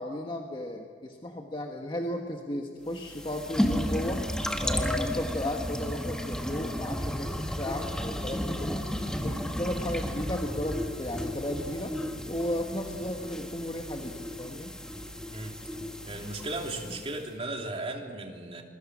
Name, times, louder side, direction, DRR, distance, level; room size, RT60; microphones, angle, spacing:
voice 1, 0.0-4.2 4.6-8.9 9.2-11.9 12.3-14.7, left 1 dB, 30° left, 2 dB, 1.4 m, -34 dB
sound 1, 2.9-17.2, equal, 5° left, 1.6 m, -33 dB
voice 2, 16.1-18.6, right 2 dB, 35° right, 2 dB, 3.1 m, -36 dB
26.5 x 23.0 x 6.3 m, 2.2 s
head